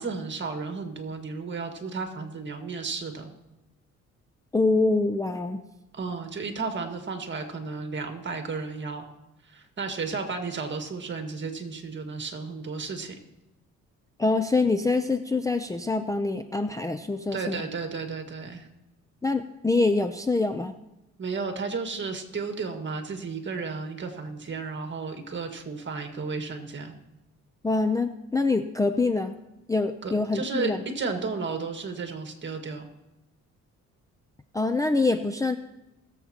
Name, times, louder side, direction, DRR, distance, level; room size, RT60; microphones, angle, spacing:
voice 1, 0.0-3.3 5.9-9.1 9.5-13.2 17.3-18.7 21.2-26.9 30.0-32.9, right 4 dB, 40° right, 5 dB, 1.8 m, -33 dB
voice 2, 4.5-5.6 14.2-17.7 19.2-20.7 27.6-29.3 29.7-30.8 34.5-35.5, left 3 dB, 10° left, 8 dB, 0.5 m, -25 dB
21.0 x 7.4 x 2.9 m, 0.95 s
cardioid pair, 90°, 30 cm